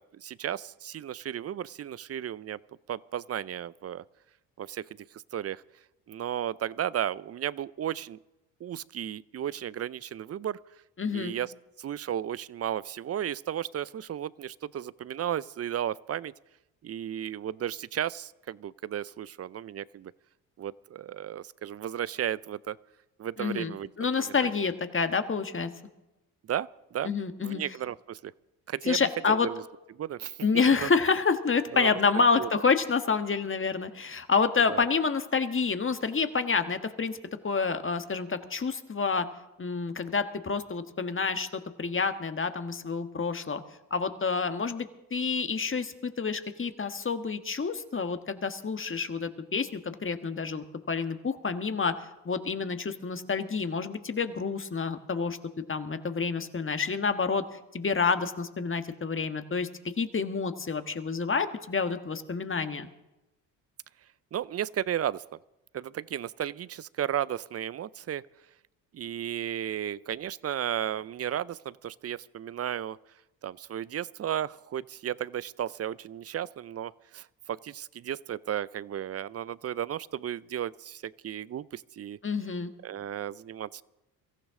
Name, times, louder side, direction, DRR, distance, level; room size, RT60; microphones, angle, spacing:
voice 1, 0.0-2.6 2.9-4.0 4.6-4.9 5.3-5.6 6.1-8.2 8.6-10.6 11.1-11.5 11.8-16.3 16.8-20.1 20.6-22.8 23.2-23.9 24.2-24.5 26.5-27.1 27.4-28.3 28.7-29.0 29.3-29.6 29.9-30.4 30.7-30.9 31.7-32.5 34.7-34.9 64.3-65.2 65.7-68.3 68.9-73.0 73.4-82.2 82.8-83.8, right 10 dB, 35° right, 21 dB, 0.5 m, -34 dB
voice 2, 11.0-11.3 23.4-25.7 27.0-27.6 28.9-29.5 30.4-37.2 37.4-39.3 39.6-43.6 43.9-51.9 52.2-55.4 55.7-59.7 60.0-62.9 82.2-82.7, left 5 dB, 30° left, 9 dB, 1.5 m, -28 dB
23.5 x 14.5 x 3.7 m, 0.97 s
supercardioid pair, 60°, 43 cm